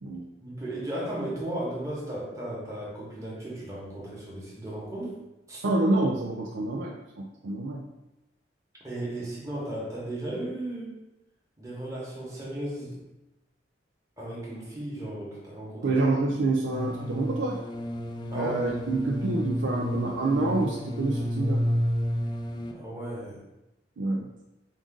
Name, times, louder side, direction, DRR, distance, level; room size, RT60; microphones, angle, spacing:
voice 1, 0.4-5.2 5.5-5.6 8.8-10.9 11.6-13.0 14.2-16.0 18.3-18.5 22.7-23.4, right 1 dB, 15° right, -6 dB, 1.3 m, -35 dB
voice 2, 5.6-7.8 15.8-17.6 18.3-21.6 24.0-24.3, right 2 dB, 80° right, -1 dB, 0.5 m, -27 dB
sound 1, 16.7-22.7, equal, 25° left, 0.3 m, -30 dB
5.2 x 2.5 x 3.7 m, 0.95 s
head